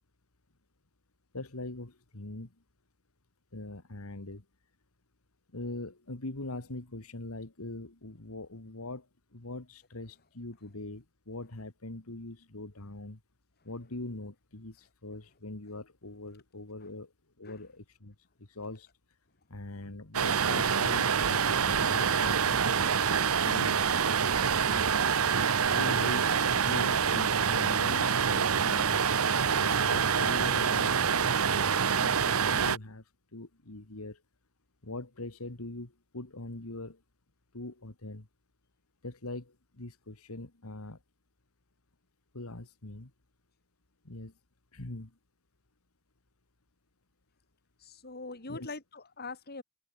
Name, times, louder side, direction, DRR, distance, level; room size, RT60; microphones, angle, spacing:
voice 1, 1.3-2.6 3.5-4.4 5.5-13.2 13.6-17.1 17.4-18.9 19.5-23.8 24.6-24.9 25.7-29.0 29.6-34.2 34.8-37.0 37.5-38.3 39.0-41.0 42.3-43.1 44.0-44.3 44.7-45.1 48.5-48.8, left 2 dB, 85° left, 2.2 m, -42 dB
sound 1, 20.1-32.8, right 6 dB, 80° right, 1.0 m, -26 dB
voice 2, 47.8-49.6, left 3 dB, 50° left, 4.1 m, -42 dB
open air
head